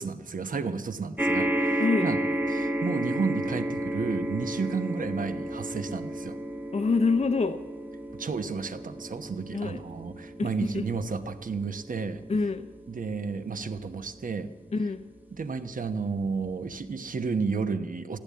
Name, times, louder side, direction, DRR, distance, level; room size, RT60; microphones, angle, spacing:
voice 1, 0.0-2.2 2.5-6.4 8.2-12.2 12.9-14.5 15.3-18.2, right 5 dB, 70° right, 8 dB, 1.0 m, -32 dB
sound 1, 1.2-15.7 16.5-16.6 16.8-16.9, right 1 dB, 10° right, 1.0 m, -33 dB
voice 2, 6.7-7.6 9.5-9.8 10.4-10.5 10.7-10.8 12.3-12.6 14.7-15.0, left 4 dB, 50° left, 8 dB, 0.6 m, -25 dB
15.5 x 10.5 x 8.4 m, 1.3 s
wide cardioid pair, 70°, 14 cm